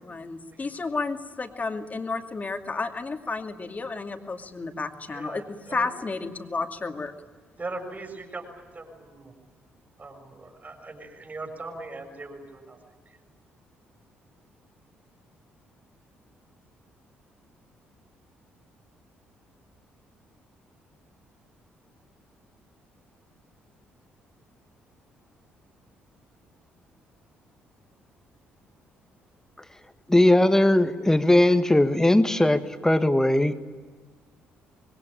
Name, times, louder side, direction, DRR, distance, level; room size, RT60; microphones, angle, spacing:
voice 1, 0.0-7.1, left 3 dB, 30° left, 5 dB, 2.5 m, -32 dB
voice 2, 5.0-5.9 7.6-9.3 10.0-12.8 13.0-13.2, right 3 dB, 30° right, 3 dB, 6.5 m, -40 dB
voice 3, 30.1-33.5, left 1 dB, 10° left, 9 dB, 1.9 m, -19 dB
25.5 x 22.0 x 8.8 m, 1.4 s
figure-of-eight pair, 45°, 6 cm